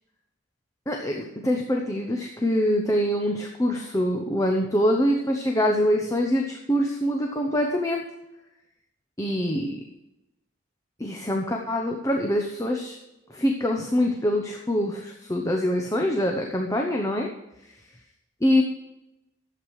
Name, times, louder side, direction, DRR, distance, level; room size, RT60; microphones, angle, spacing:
voice 1, 0.9-8.0 9.2-9.8 11.0-13.0 13.3-17.3 18.4-18.6, equal, 15° left, 1 dB, 0.9 m, -24 dB
12.0 x 8.1 x 4.8 m, 0.93 s
head